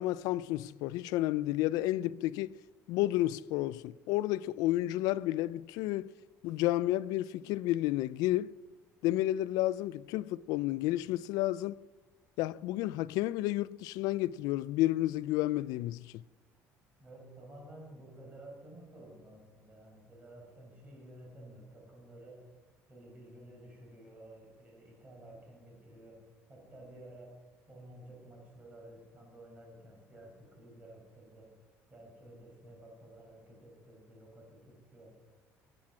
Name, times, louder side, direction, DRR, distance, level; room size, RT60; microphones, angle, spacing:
voice 1, 0.0-2.5 2.9-6.1 6.4-8.5 9.0-11.8 12.4-16.0, left 15 dB, 90° left, 0.3 m, -31 dB
voice 2, 17.0-22.4 22.9-26.2 26.5-27.3 27.7-31.5 31.9-35.1, right 1 dB, 25° right, 5.4 m, -52 dB
21.5 x 8.7 x 6.1 m
cardioid pair, 155°, 6 cm